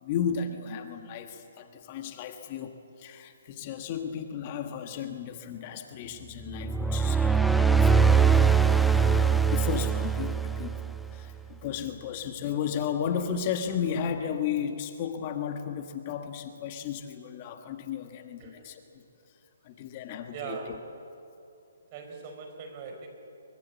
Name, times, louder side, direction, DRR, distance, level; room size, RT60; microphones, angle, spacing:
voice 1, 0.0-18.8 19.6-20.8, left 8 dB, 35° left, 6 dB, 1.6 m, -34 dB
sound 1, 6.5-11.2, right 6 dB, ahead, 0.6 m, -22 dB
voice 2, 20.3-20.7 21.9-23.1, right 5 dB, 35° right, 4 dB, 4.8 m, -40 dB
23.5 x 23.5 x 8.4 m, 2.7 s
hypercardioid pair, 150°, 0 cm